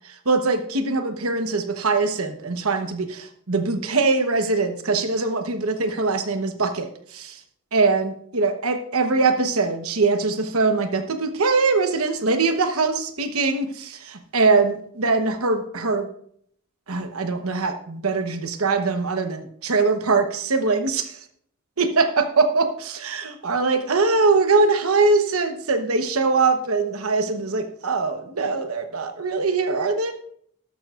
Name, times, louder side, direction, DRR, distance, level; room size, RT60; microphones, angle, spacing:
voice 1, 0.3-7.4 7.7-16.1 16.9-21.1 21.8-30.1, right 3 dB, 85° right, 7 dB, 1.1 m, -22 dB
13.0 x 12.0 x 2.5 m, 0.64 s
head